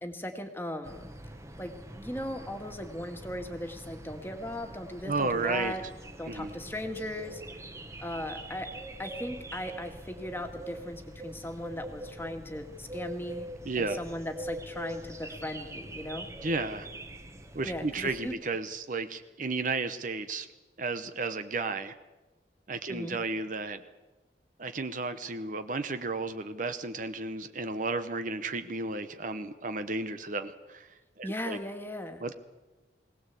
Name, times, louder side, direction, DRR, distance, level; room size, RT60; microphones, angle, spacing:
voice 1, 0.0-1.1 1.6-5.8 6.2-7.4 8.0-8.7 9.0-13.5 13.8-16.3 17.6-18.3 22.9-23.2 31.2-32.2, left 1 dB, 10° left, 5 dB, 1.9 m, -38 dB
sound 1, 0.8-18.4, right 1 dB, 15° right, 1.4 m, -44 dB
voice 2, 5.0-5.7 6.3-6.5 13.6-14.0 16.4-16.9 17.5-20.5 20.8-21.9 22.7-23.8 24.6-30.9 31.2-31.6 32.2-32.3, right 3 dB, 45° right, 10 dB, 0.9 m, -33 dB
21.0 x 18.0 x 8.3 m, 1.2 s
head